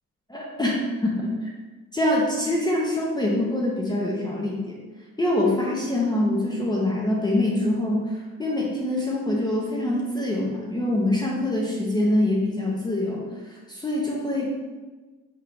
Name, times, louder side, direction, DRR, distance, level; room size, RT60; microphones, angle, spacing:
voice 1, 0.3-1.3 1.9-4.8 5.2-8.1 8.4-13.2 13.7-14.5, left 1 dB, 15° left, -3 dB, 0.6 m, -24 dB
4.4 x 3.2 x 2.6 m, 1.3 s
cardioid pair, 90°, 30 cm